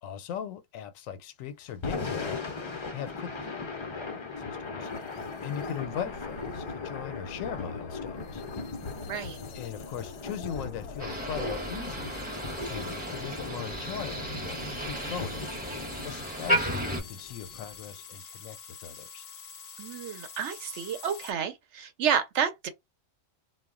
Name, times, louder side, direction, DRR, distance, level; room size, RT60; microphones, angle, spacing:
voice 1, 0.0-2.4 2.9-4.9 5.4-8.4 9.5-15.8 16.0-19.2, left 8 dB, 90° left, 1.0 m, -39 dB
Thunder / Rain, 1.7-17.9, left 4 dB, 50° left, 0.3 m, -39 dB
Aliens tuning in, 4.8-21.3, left 6 dB, 65° left, 0.7 m, -47 dB
voice 2, 9.1-9.4 19.8-22.7, right 8 dB, 70° right, 0.9 m, -30 dB
Motor vehicle (road), 11.0-17.0, right 1 dB, 10° right, 0.7 m, -33 dB
2.3 x 2.1 x 3.5 m
omnidirectional pair, 1.3 m